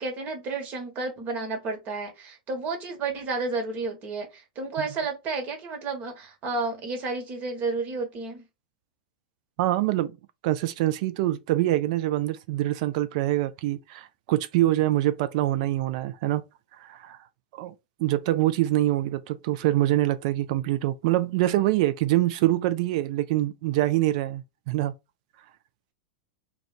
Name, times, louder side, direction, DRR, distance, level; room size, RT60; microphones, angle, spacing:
voice 1, 0.0-8.5, right 3 dB, 35° right, 1.3 m, -31 dB
voice 2, 9.6-10.2 10.4-16.4 16.8-17.2 17.6-17.7 18.0-24.9, right 15 dB, 55° right, 0.4 m, -25 dB
2.5 x 2.3 x 4.0 m
hypercardioid pair, 100°, 5 cm